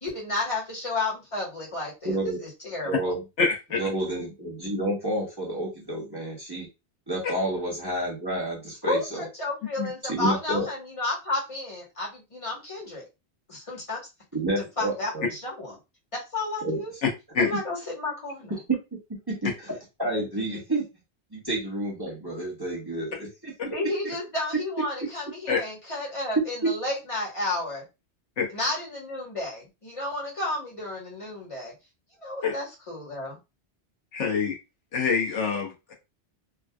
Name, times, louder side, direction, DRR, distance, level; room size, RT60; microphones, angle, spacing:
voice 1, 0.0-2.3 2.6-3.1 8.8-13.0 13.5-14.0 14.6-15.8 16.1-16.9 17.4-18.5 23.7-27.8 28.5-31.7 32.2-33.4, left 2 dB, 30° left, -3 dB, 1.4 m, -32 dB
voice 2, 2.0-2.4 2.8-3.2 3.8-6.7 7.1-9.2 10.0-10.7 14.3-15.3 16.6-16.8 19.3-20.8 21.3-23.5 26.6-26.7, right 1 dB, 20° right, -4 dB, 1.1 m, -30 dB
voice 3, 3.4-3.8 9.8-9.9 17.3-17.5 25.5-25.6 28.4-28.5 32.4-32.5 34.1-34.6 34.9-35.9, left 5 dB, 90° left, 1 dB, 1.3 m, -25 dB
3.7 x 2.5 x 2.2 m, 0.25 s
omnidirectional pair, 1.2 m